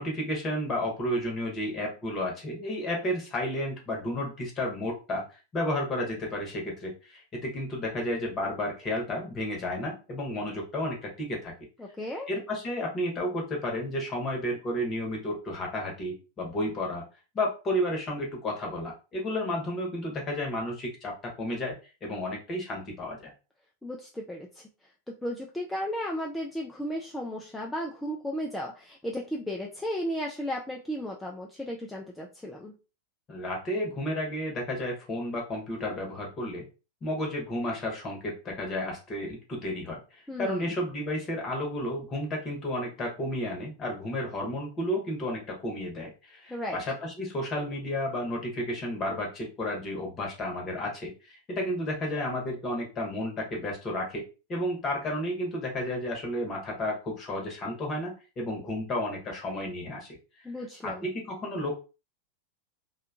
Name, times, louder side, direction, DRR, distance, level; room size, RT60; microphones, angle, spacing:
voice 1, 0.0-11.5 12.3-17.0 17.3-21.7 22.0-23.3 33.3-36.7 37.0-54.2 54.5-60.2 60.8-61.7, left 1 dB, 25° left, 0 dB, 0.9 m, -32 dB
voice 2, 11.8-12.3 23.8-24.7 25.1-32.7 40.3-40.7 46.5-46.8 60.4-61.1, equal, 5° left, -1 dB, 0.3 m, -34 dB
2.6 x 2.2 x 2.4 m, 0.32 s
figure-of-eight pair, 90°, 0 cm